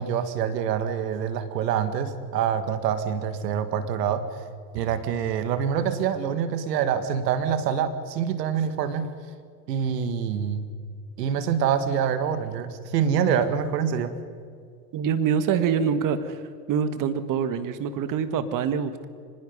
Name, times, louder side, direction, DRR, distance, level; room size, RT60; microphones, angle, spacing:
voice 1, 0.0-4.2 4.7-9.1 9.7-10.7 11.2-14.1, right 8 dB, 75° right, 10 dB, 2.1 m, -26 dB
voice 2, 14.9-16.4 16.7-19.1, right 7 dB, 40° right, 11 dB, 1.8 m, -25 dB
24.5 x 21.0 x 5.5 m, 2.2 s
hypercardioid pair, 100°, 49 cm